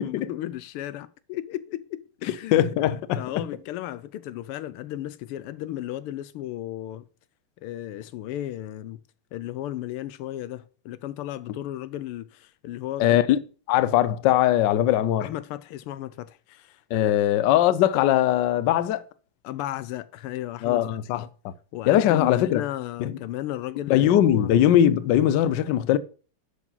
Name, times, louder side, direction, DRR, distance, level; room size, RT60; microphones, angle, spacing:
voice 1, 0.0-2.7 3.1-7.1 7.6-9.0 9.3-13.2 15.2-17.1 19.4-20.8 21.7-24.5, left 13 dB, 85° left, 1.6 m, -34 dB
voice 2, 2.5-3.2 13.0-13.4 13.7-15.3 16.9-19.0 20.6-21.3 21.9-22.6 23.0-23.2 23.9-26.0, left 12 dB, 70° left, 1.1 m, -20 dB
11.0 x 4.8 x 5.5 m
omnidirectional pair, 2.4 m